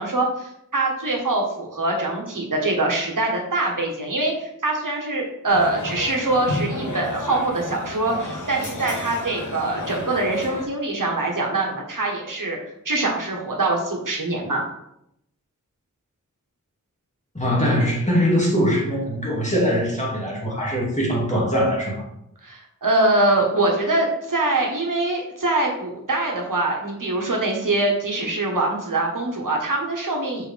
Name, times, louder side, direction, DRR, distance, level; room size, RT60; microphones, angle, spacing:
voice 1, 0.0-12.6 12.8-14.6 22.4-30.5, right 2 dB, 80° right, -1 dB, 1.4 m, -23 dB
sound 1, 5.5-10.7, left 1 dB, 70° left, 1.3 m, -31 dB
voice 2, 17.3-21.9, equal, 20° left, -4 dB, 2.3 m, -22 dB
5.9 x 4.9 x 3.4 m, 0.78 s
wide cardioid pair, 50°, 31 cm